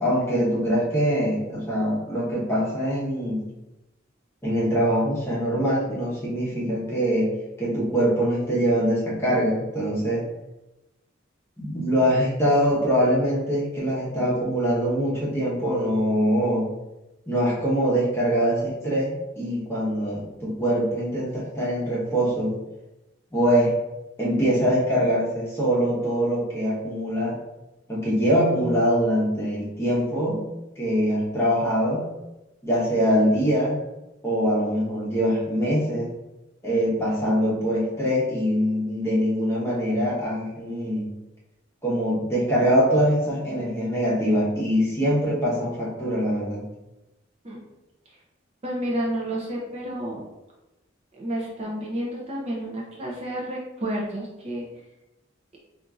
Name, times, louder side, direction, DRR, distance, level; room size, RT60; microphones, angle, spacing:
voice 1, 0.0-3.4 4.4-7.3 7.6-10.2 11.6-16.7 17.3-22.5 23.3-23.7 24.2-27.4 27.9-30.4 30.8-32.1 32.6-33.8 34.2-36.1 36.6-41.1 41.8-46.6, equal, 15° left, -6 dB, 1.0 m, -23 dB
voice 2, 48.6-50.2 51.2-54.6, right 1 dB, 35° right, -4 dB, 0.6 m, -30 dB
4.4 x 2.5 x 2.4 m, 0.98 s
head